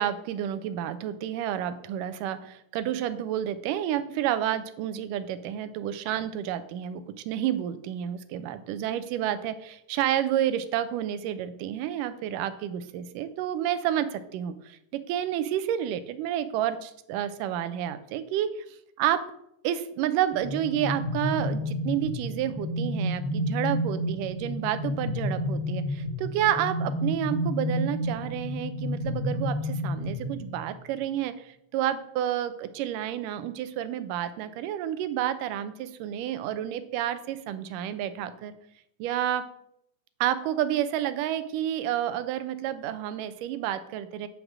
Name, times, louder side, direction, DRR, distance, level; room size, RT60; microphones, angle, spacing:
voice 1, 0.0-18.7 19.0-19.2 19.6-38.5 39.0-39.4 40.2-44.3, right 11 dB, 85° right, 11 dB, 2.3 m, -30 dB
sound 1, 20.3-30.8, left 1 dB, 40° right, 1.4 m, -30 dB
9.3 x 5.1 x 6.1 m, 0.79 s
omnidirectional pair, 3.7 m